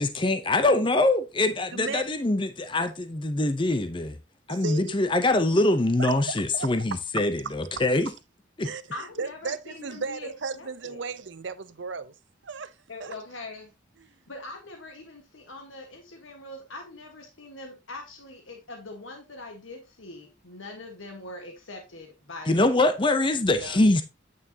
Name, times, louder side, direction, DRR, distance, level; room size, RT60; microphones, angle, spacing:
voice 1, 0.0-4.2 4.5-8.1 8.6-8.7 22.5-24.0, left 2 dB, 25° left, 0.6 m, -23 dB
voice 2, 1.7-2.1 4.5-4.9 6.0-7.0 7.4-7.5 8.6-12.1 12.4-12.7 13.0-13.1 14.0-14.1 23.5-23.8, right 4 dB, 70° right, 0.6 m, -35 dB
voice 3, 8.9-11.1 12.9-13.7 14.3-22.8, left 2 dB, 85° left, 1.4 m, -42 dB
9.2 x 6.2 x 2.8 m
head